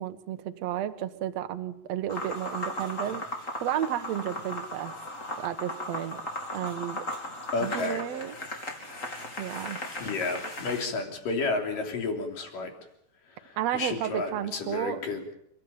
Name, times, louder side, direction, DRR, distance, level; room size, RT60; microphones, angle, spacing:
voice 1, 0.0-3.2 3.6-4.9 5.4-6.2 6.5-7.1 7.6-8.3 9.4-9.8 13.6-15.0, right 11 dB, 65° right, 8 dB, 1.7 m, -32 dB
sound 1, 2.1-10.9, left 1 dB, 20° left, 3.0 m, -37 dB
voice 2, 7.5-8.0 10.0-12.7 13.4-15.3, left 3 dB, 55° left, 3 dB, 4.8 m, -31 dB
29.5 x 14.5 x 9.0 m, 0.74 s
omnidirectional pair, 4.9 m